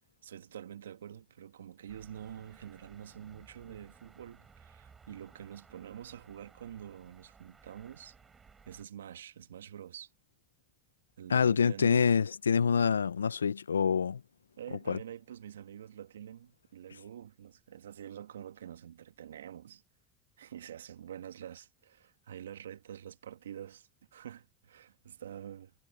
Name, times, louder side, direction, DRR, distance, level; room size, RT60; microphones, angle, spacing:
voice 1, 0.2-8.2 8.7-10.1 11.2-12.1 14.6-19.8 20.4-25.7, right 10 dB, 85° right, 1.6 m, -47 dB
sound 1, 1.9-8.8, right 5 dB, 25° right, 7.8 m, -59 dB
voice 2, 11.3-14.2 14.9-15.0, left 6 dB, 90° left, 0.6 m, -26 dB
hypercardioid pair, 75°, 0 cm